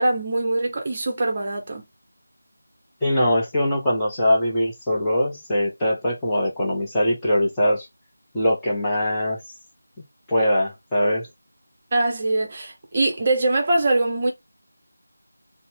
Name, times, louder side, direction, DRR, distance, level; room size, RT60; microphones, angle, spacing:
voice 1, 0.0-1.8 11.9-14.3, right 2 dB, 30° right, 0.8 m, -22 dB
voice 2, 3.0-7.9 8.3-9.4 10.3-11.3, equal, 5° left, 0.8 m, -22 dB
4.0 x 2.1 x 3.6 m
figure-of-eight pair, 165°, 0 cm